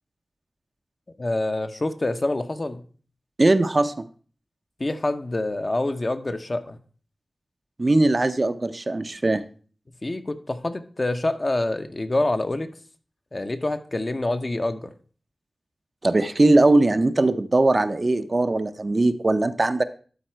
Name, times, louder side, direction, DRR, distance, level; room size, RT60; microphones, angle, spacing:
voice 1, 1.2-2.8 4.8-6.8 10.0-12.7 13.3-14.9, left 2 dB, 40° left, 7 dB, 0.8 m, -26 dB
voice 2, 3.4-4.0 7.8-9.4 16.0-19.8, right 2 dB, 40° right, 10 dB, 0.5 m, -20 dB
12.0 x 4.1 x 4.5 m, 0.41 s
cardioid pair, 55°, 0 cm